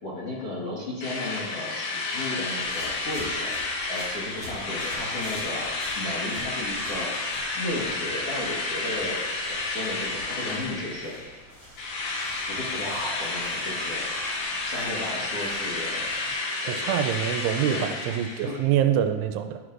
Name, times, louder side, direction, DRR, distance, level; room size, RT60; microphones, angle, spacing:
voice 1, 0.0-3.5 3.9-7.1 7.6-9.2 9.5-11.1 12.5-14.0 14.6-16.1 16.6-16.8 17.7-18.2 18.4-18.5, left 1 dB, 55° left, -9 dB, 1.7 m, -34 dB
Drill, 1.0-11.4 11.8-18.7, left 3 dB, 75° left, 1.7 m, -31 dB
sound 1, 2.6-16.3, equal, 25° left, 2.3 m, -46 dB
voice 2, 16.7-19.6, right 10 dB, 85° right, 7 dB, 2.6 m, -25 dB
11.5 x 6.3 x 2.5 m, 1.4 s
omnidirectional pair, 4.8 m